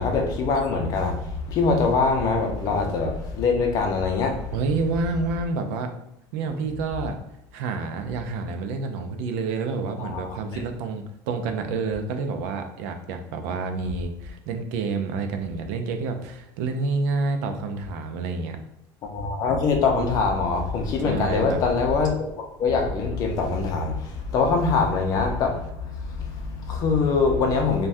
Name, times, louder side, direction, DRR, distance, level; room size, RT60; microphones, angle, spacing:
voice 1, 0.0-4.5 10.0-10.6 19.0-27.9, left 4 dB, 40° left, 3 dB, 0.5 m, -24 dB
voice 2, 4.5-5.9 6.3-7.2 7.5-18.6 21.0-21.6, right 4 dB, 75° right, 6 dB, 0.4 m, -28 dB
2.6 x 2.2 x 3.3 m, 0.79 s
cardioid pair, 155°, 10 cm